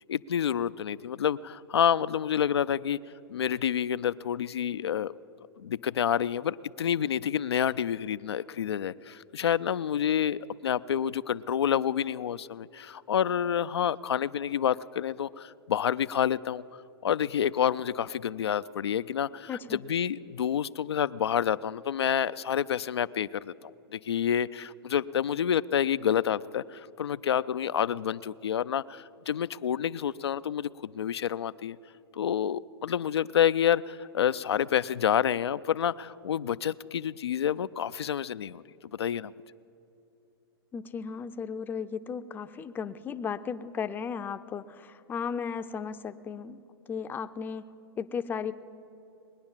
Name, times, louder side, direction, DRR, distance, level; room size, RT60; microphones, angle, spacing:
voice 1, 0.1-3.0 3.3-5.1 5.6-16.6 17.0-31.8 32.1-38.6 39.0-39.3, left 9 dB, 90° left, 14 dB, 0.4 m, -28 dB
voice 2, 19.5-19.8 40.7-46.6 46.9-47.7 48.0-48.5, left 6 dB, 15° left, 11 dB, 0.5 m, -35 dB
20.5 x 9.5 x 7.3 m, 2.9 s
hypercardioid pair, 125°, 13 cm